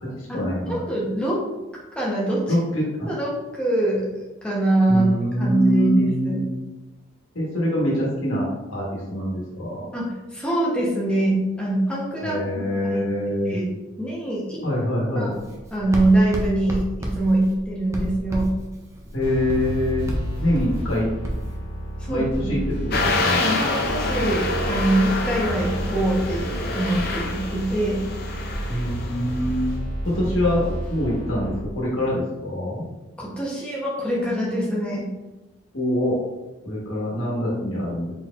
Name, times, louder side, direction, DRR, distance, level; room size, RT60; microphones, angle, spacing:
voice 1, 0.0-0.8 2.5-3.1 4.9-6.4 7.3-9.8 12.2-13.6 14.6-15.3 19.1-20.1 20.4-21.1 22.1-23.5 28.7-29.7 30.0-32.8 35.7-36.2 36.6-38.1, left 1 dB, 75° left, -5 dB, 1.4 m, -25 dB
voice 2, 0.9-1.4 1.9-2.5 3.1-4.1 4.4-5.0 5.4-6.4 9.9-12.6 12.9-13.1 13.4-13.7 14.0-14.6 15.1-15.4 15.7-18.5 22.0-22.5 23.3-28.0 33.2-35.1, right 1 dB, 5° left, -5 dB, 0.9 m, -23 dB
Writing, 15.3-21.6, equal, 15° right, 0.5 m, -31 dB
sound 1, 19.2-31.6, equal, 25° left, 1.5 m, -31 dB
sound 2, 22.9-29.6, left 2 dB, 45° left, 0.5 m, -27 dB
4.4 x 4.0 x 2.5 m, 1.1 s
head